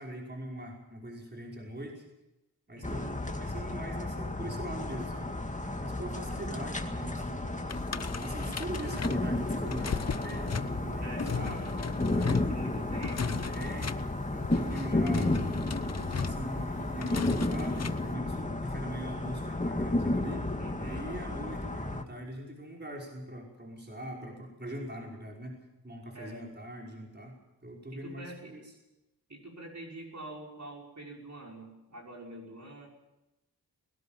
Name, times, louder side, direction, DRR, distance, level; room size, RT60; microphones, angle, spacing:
voice 1, 0.0-2.0 2.7-5.3 5.8-7.7 8.2-12.5 13.5-15.4 16.1-20.5 20.8-28.6, right 1 dB, 25° right, -1 dB, 5.4 m, -42 dB
voice 2, 2.7-3.2 6.1-6.4 11.0-11.6 12.3-13.6 20.6-21.1 26.1-26.5 28.0-28.6 29.3-32.9, right 2 dB, 45° right, -1 dB, 5.8 m, -46 dB
sound 1, 2.8-22.0, left 2 dB, 20° left, 2.2 m, -33 dB
sound 2, 7.7-18.1, left 6 dB, 40° left, 0.8 m, -37 dB
21.0 x 18.0 x 7.5 m, 0.94 s
wide cardioid pair, 60°, 39 cm